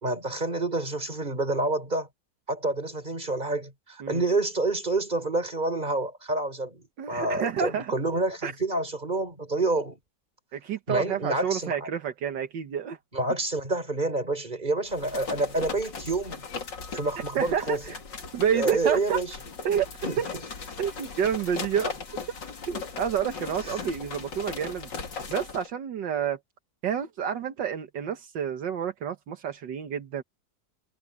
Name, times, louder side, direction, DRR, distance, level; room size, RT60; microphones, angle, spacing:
voice 1, 0.0-2.1 2.5-10.0 10.9-11.9 13.1-16.4 16.9-17.8 18.5-19.3 20.0-20.2, right 2 dB, 25° right, 5.1 m, -28 dB
voice 2, 7.0-7.9 8.4-8.5 10.5-13.0 17.4-18.0 18.3-19.2 19.6-19.9 20.2-20.3 20.8-22.2 22.7-24.9 25.3-26.4 26.8-30.2, right 8 dB, 80° right, 1.9 m, -29 dB
sound 1, 14.9-25.7, left 5 dB, 85° left, 3.1 m, -38 dB
omnidirectional pair, 1.9 m